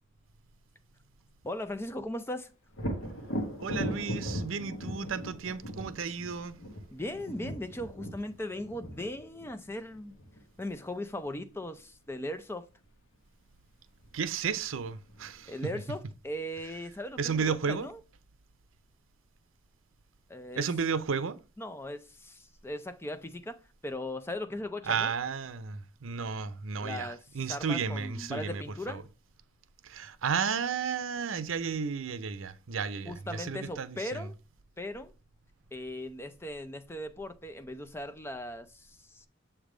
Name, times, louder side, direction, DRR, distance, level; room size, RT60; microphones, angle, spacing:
voice 1, 1.4-2.5 6.9-10.2 10.6-12.7 15.5-18.0 20.3-20.7 21.6-25.1 26.8-29.1 33.0-34.3 34.8-35.1 35.7-39.3, left 1 dB, 10° left, 0.4 m, -38 dB
Thunder, 2.7-10.4 14.0-14.1 14.6-15.5, equal, 75° left, 1.3 m, -38 dB
voice 2, 3.6-6.6 14.1-15.5 17.2-17.9 20.6-21.4 24.9-28.6 28.9-29.0 29.8-34.3, right 6 dB, 80° right, 0.6 m, -33 dB
7.2 x 3.4 x 5.0 m
head